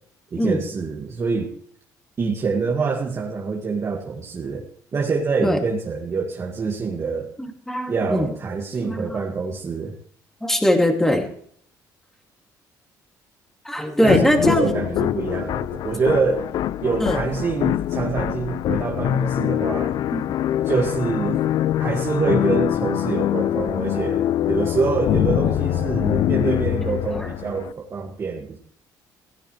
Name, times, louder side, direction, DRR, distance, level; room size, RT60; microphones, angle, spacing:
voice 1, 0.3-1.5 2.2-4.7 4.9-7.3 7.9-9.9 14.0-16.5 16.8-20.0 20.6-21.4 21.8-28.6, right 4 dB, 35° right, 0 dB, 2.1 m, -25 dB
voice 2, 7.4-8.3 8.9-9.2 10.4-11.3 13.6-14.7 16.9-17.2 20.1-20.2 27.1-27.3, left 1 dB, 5° left, 2 dB, 2.6 m, -21 dB
sound 1, 14.1-27.7, left 12 dB, 65° left, 0.5 m, -24 dB
17.0 x 16.5 x 3.3 m, 0.62 s
cardioid pair, 120°, 8 cm